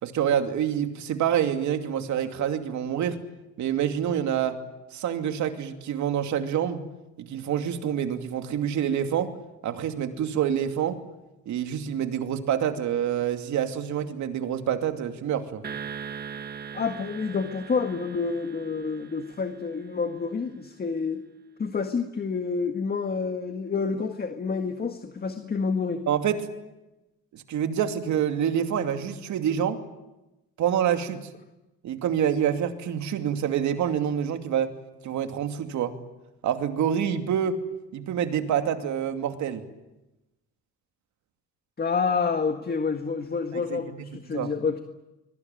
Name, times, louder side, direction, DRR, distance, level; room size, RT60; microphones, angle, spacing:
voice 1, 0.0-3.2 3.6-4.6 4.9-6.8 7.2-9.3 9.6-11.0 11.5-15.6 26.1-26.4 27.3-29.8 30.6-31.3 31.8-34.7 35.0-35.9 36.4-37.6 37.9-39.6 43.5-43.8 44.3-44.5, right 9 dB, 70° right, 7 dB, 2.6 m, -27 dB
sound 1, 15.6-20.1, right 7 dB, 35° right, 1.2 m, -40 dB
voice 2, 16.7-21.2 21.6-26.0 41.8-44.8, left 5 dB, 30° left, 6 dB, 1.8 m, -28 dB
26.0 x 22.5 x 9.2 m, 0.99 s
cardioid pair, 105°, 30 cm